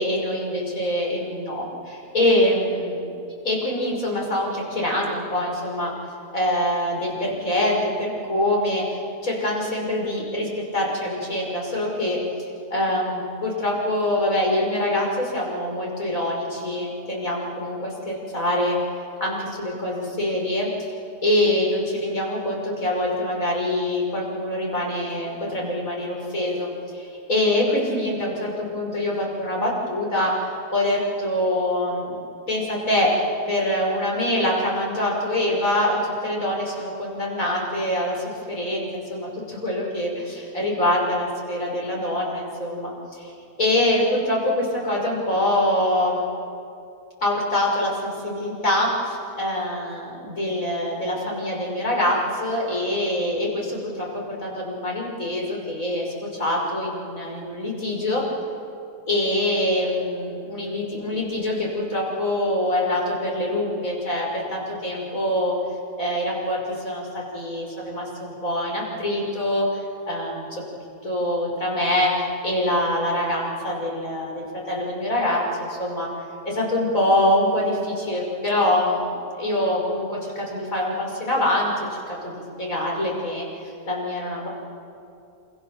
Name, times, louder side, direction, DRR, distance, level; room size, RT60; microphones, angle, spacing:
voice 1, 0.0-3.0 3.4-5.9 6.3-9.0 9.2-12.2 12.7-18.8 19.2-20.9 21.2-32.2 32.5-43.3 43.6-46.2 47.2-58.2 59.1-65.5 66.0-70.6 71.0-76.1 76.5-79.1 79.4-84.5, left 1 dB, 55° left, -2 dB, 6.3 m, -24 dB
28.0 x 27.5 x 7.5 m, 2.6 s
omnidirectional pair, 1.7 m